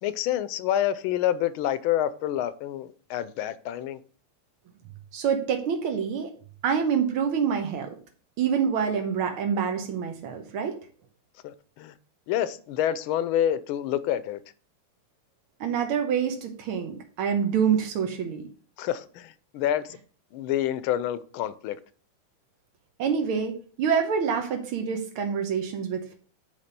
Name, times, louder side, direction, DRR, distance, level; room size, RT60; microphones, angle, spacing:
voice 1, 0.0-4.0 11.4-11.9 12.3-14.4 18.8-19.8 20.3-21.8, left 11 dB, 80° left, 1.4 m, -27 dB
voice 2, 5.1-6.3 6.6-8.0 8.4-10.8 15.6-18.5 23.0-26.2, right 7 dB, 85° right, 1.9 m, -26 dB
9.5 x 3.4 x 6.7 m
omnidirectional pair, 2.3 m